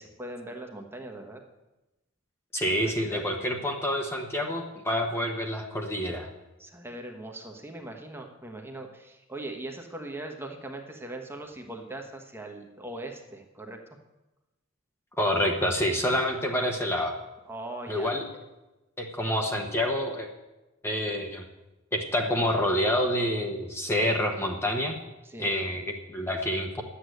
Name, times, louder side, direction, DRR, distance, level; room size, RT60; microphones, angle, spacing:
voice 1, 0.0-1.4 2.6-3.2 6.6-14.0 17.5-18.1 25.2-25.5, right 1 dB, 10° right, 3 dB, 1.2 m, -40 dB
voice 2, 2.5-6.3 15.2-17.1 17.9-18.2 19.0-20.3 20.8-21.4 21.9-25.0 25.4-26.8, equal, 10° left, 2 dB, 1.1 m, -27 dB
11.0 x 8.4 x 7.9 m, 1.0 s
head